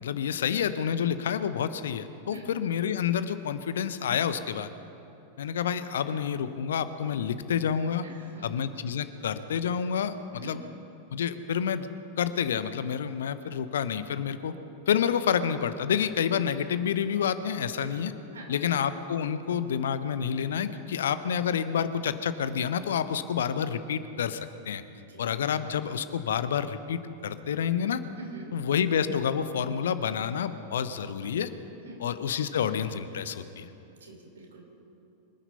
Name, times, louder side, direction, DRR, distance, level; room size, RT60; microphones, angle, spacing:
voice 1, 0.0-4.7 5.4-8.1 8.4-10.1 10.4-10.6 11.1-11.9 12.2-14.5 14.9-18.1 18.5-24.4 24.7-24.8 25.2-28.0 28.5-31.5 32.0-33.7, left 8 dB, 65° left, 12 dB, 0.8 m, -28 dB
voice 2, 8.0-8.7 10.3-10.6 17.8-17.9 18.3-18.7 25.1-25.2 28.1-28.5 31.8-32.0 34.0-34.7, right 2 dB, 70° right, 2 dB, 3.1 m, -45 dB
24.5 x 10.0 x 5.5 m, 3.0 s
figure-of-eight pair, 90°, 0 cm